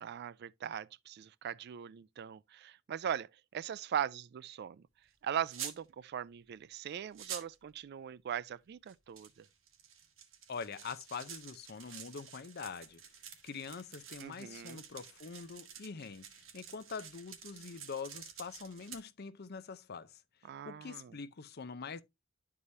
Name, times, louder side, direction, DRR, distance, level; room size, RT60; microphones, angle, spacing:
voice 1, 0.0-4.8 5.2-9.5 14.2-14.8 20.4-21.1, right 9 dB, 55° right, 0.3 m, -40 dB
sound 1, 5.5-5.8 6.8-6.9 7.1-7.6 8.9-19.0, right 8 dB, 75° right, 1.7 m, -49 dB
voice 2, 10.5-13.0 13.4-22.0, left 5 dB, 55° left, 0.6 m, -44 dB
11.0 x 4.8 x 2.7 m
head